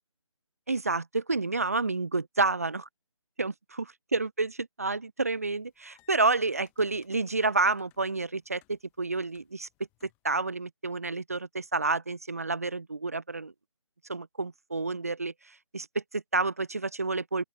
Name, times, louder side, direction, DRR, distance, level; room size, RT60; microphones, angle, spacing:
voice 1, 0.7-2.9 3.4-3.9 4.1-9.7 10.0-13.5 14.1-17.4, right 3 dB, 30° right, 0.4 m, -29 dB
sound 1, 5.4-10.3, left 24 dB, 10° left, 3.0 m, -67 dB
open air
figure-of-eight pair, 165°, 17 cm